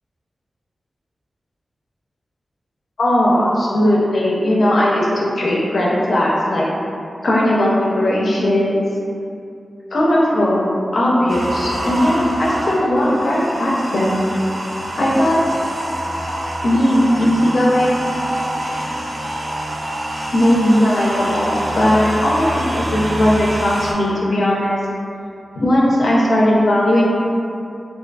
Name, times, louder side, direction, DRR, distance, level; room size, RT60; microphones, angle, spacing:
voice 1, 3.0-6.7 7.2-8.8 9.9-14.2 14.9-15.4 16.6-18.0 20.3-24.8 25.6-27.0, left 1 dB, 75° left, -5 dB, 0.4 m, -17 dB
sound 1, 11.3-23.9, right 1 dB, 45° right, 0.3 m, -26 dB
2.4 x 2.4 x 2.2 m, 2.5 s
wide cardioid pair, 85°, 0 cm